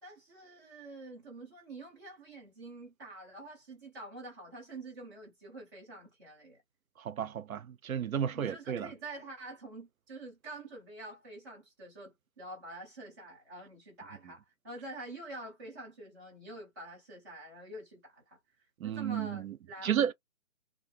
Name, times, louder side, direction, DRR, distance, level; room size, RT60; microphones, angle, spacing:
voice 1, 0.0-6.6 8.3-18.4 18.8-20.1, right 2 dB, 15° right, 0.7 m, -47 dB
voice 2, 7.0-8.9 18.8-19.5 19.8-20.1, right 9 dB, 85° right, 0.6 m, -32 dB
2.6 x 2.2 x 2.4 m
hypercardioid pair, 155°, 41 cm